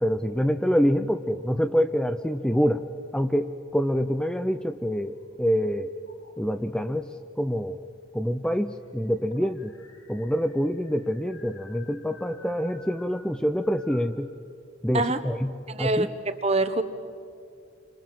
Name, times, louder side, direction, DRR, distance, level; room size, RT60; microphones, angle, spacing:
voice 1, 0.0-2.8 3.1-5.9 6.4-7.1 7.4-7.8 8.1-9.7 10.1-14.3 14.8-16.1, equal, 5° left, 7 dB, 0.6 m, -26 dB
sound 1, 4.1-5.5 6.0-6.7 7.7-7.8 8.0-8.1 8.4-14.2, left 2 dB, 75° left, 4.8 m, -53 dB
voice 2, 15.7-16.8, right 2 dB, 30° right, 10 dB, 1.3 m, -25 dB
30.0 x 25.5 x 7.7 m, 2.4 s
head